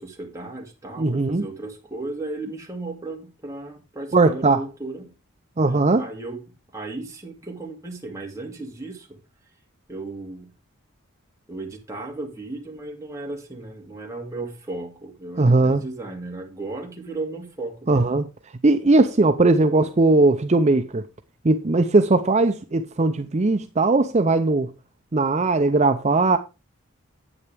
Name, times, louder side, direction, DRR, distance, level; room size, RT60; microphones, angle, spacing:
voice 1, 0.0-5.1 5.6-9.2 9.9-10.5 11.5-18.1, right 2 dB, 15° right, 2.4 m, -35 dB
voice 2, 1.0-1.5 4.1-4.6 5.6-6.1 15.4-15.8 17.9-18.3 18.6-21.0 21.4-24.7 25.1-26.4, right 3 dB, 30° right, 0.5 m, -19 dB
9.8 x 8.5 x 3.4 m
head